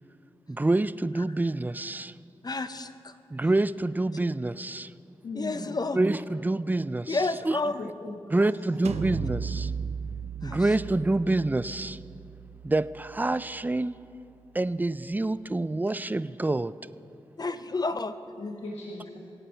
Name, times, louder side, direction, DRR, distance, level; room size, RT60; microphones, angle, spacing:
voice 1, 0.5-2.1 3.3-4.9 5.9-7.2 7.4-7.6 8.3-9.7 10.4-12.0 12.6-13.9 14.5-16.7, right 2 dB, 15° right, 16 dB, 0.4 m, -27 dB
voice 2, 2.4-3.1 5.3-6.0 7.1-7.9 10.4-10.7 17.4-18.2, left 3 dB, 40° left, 11 dB, 0.7 m, -30 dB
voice 3, 5.2-5.7 7.8-8.4 18.4-19.2, left 2 dB, 75° left, -2 dB, 1.3 m, -38 dB
sound 1, 8.8-14.5, right 6 dB, 80° right, 0.5 m, -37 dB
23.5 x 8.2 x 4.5 m, 2.7 s
cardioid pair, 45°, 11 cm